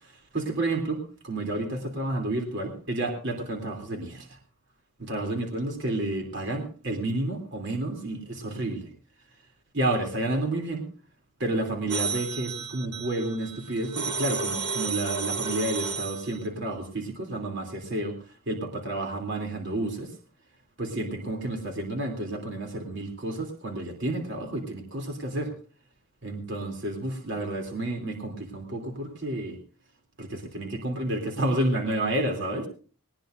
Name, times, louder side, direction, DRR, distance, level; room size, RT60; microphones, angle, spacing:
voice 1, 0.3-4.3 5.0-8.9 9.7-10.9 11.4-18.2 18.5-20.1 20.8-25.5 26.2-29.6 30.2-32.7, right 1 dB, 55° right, 2 dB, 2.9 m, -30 dB
sound 1, 11.9-16.4, right 4 dB, 85° right, 3.3 m, -32 dB
19.5 x 19.5 x 2.5 m, 0.39 s
head